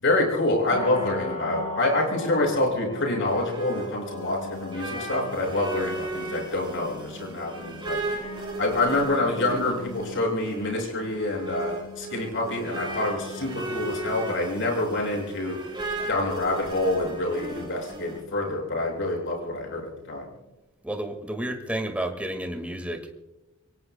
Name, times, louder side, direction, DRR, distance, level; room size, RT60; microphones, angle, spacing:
voice 1, 0.0-8.0 8.6-15.6 16.1-20.3, left 2 dB, 65° left, 0 dB, 5.9 m, -27 dB
sound 1, 0.7-20.5, left 3 dB, 35° left, 5.6 m, -41 dB
sound 2, 2.9-18.2, right 2 dB, 25° right, 3.7 m, -36 dB
voice 2, 20.8-23.1, right 1 dB, 5° right, 4 dB, 1.8 m, -31 dB
26.5 x 23.5 x 2.2 m, 1.0 s
head